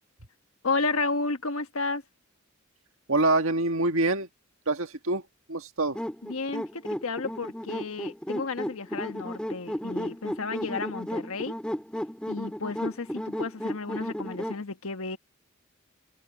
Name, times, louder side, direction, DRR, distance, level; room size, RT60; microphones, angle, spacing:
voice 1, 0.6-2.0 6.2-11.6 12.3-15.2, left 3 dB, 80° left, 1.4 m, -32 dB
voice 2, 3.1-4.3 4.7-5.2 5.5-6.0, right 2 dB, 70° right, 1.7 m, -25 dB
sound 1, 6.0-14.6, equal, 5° left, 2.5 m, -34 dB
head